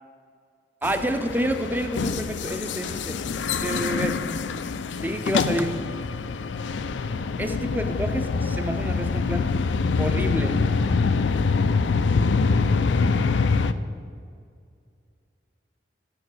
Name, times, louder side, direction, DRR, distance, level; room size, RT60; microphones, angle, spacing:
sound 1, 0.8-13.7, left 4 dB, 75° left, 0.5 m, -25 dB
voice 1, 0.8-3.2 3.6-4.2 5.0-5.8 7.4-9.5 10.0-10.6, right 1 dB, 10° right, 8 dB, 0.5 m, -29 dB
10.5 x 6.1 x 6.3 m, 2.2 s
head